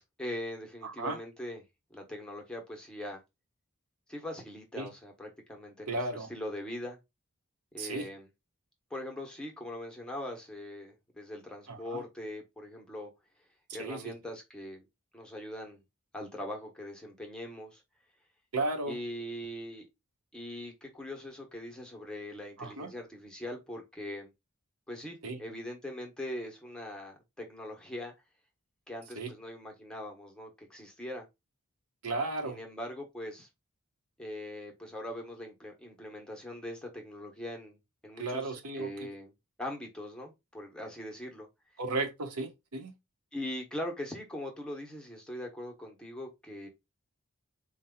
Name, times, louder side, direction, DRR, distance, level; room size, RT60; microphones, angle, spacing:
voice 1, 0.0-1.6 1.9-3.2 4.1-7.0 7.7-8.3 8.9-13.1 13.7-14.9 15.1-15.8 16.1-17.8 18.9-19.9 20.3-24.3 24.9-28.1 28.9-31.3 32.4-33.5 34.2-37.8 38.0-39.3 39.6-41.5 43.3-46.7, left 1 dB, 5° left, 0.9 m, -41 dB
voice 2, 0.8-1.2 4.8-4.9 5.9-6.3 7.8-8.1 11.7-12.0 13.7-14.1 18.5-19.0 22.6-22.9 25.2-25.4 29.2-29.3 32.0-32.6 38.2-39.1 41.8-42.9, right 2 dB, 90° right, 1.0 m, -34 dB
4.2 x 2.3 x 3.6 m
head